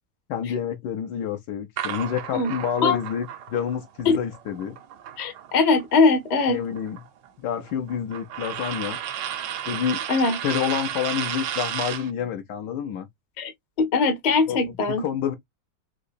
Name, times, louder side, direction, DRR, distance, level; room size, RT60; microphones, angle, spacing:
voice 1, 0.3-4.8 6.5-7.0 7.4-9.0 9.7-10.0 10.4-13.1 14.5-15.3, left 8 dB, 70° left, 1.1 m, -28 dB
sound 1, 1.8-5.8 6.1-12.1, right 10 dB, 75° right, 1.3 m, -33 dB
voice 2, 5.2-6.6 10.1-10.4 13.4-13.5 13.8-15.0, left 4 dB, 40° left, 0.6 m, -21 dB
3.8 x 2.7 x 2.5 m
omnidirectional pair, 2.1 m